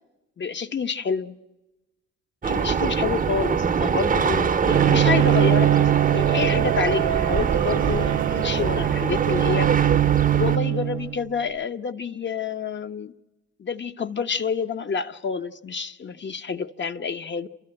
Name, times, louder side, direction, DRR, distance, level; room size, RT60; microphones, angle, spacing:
voice 1, 0.4-1.4 2.4-9.7 10.3-13.1 13.6-17.5, left 6 dB, 40° left, 1.0 m, -28 dB
sound 1, 2.4-10.6, right 6 dB, 30° right, 0.7 m, -24 dB
Bowed string instrument, 4.7-11.4, right 13 dB, 65° right, 0.7 m, -22 dB
30.0 x 13.5 x 8.9 m
cardioid pair, 90°, 30 cm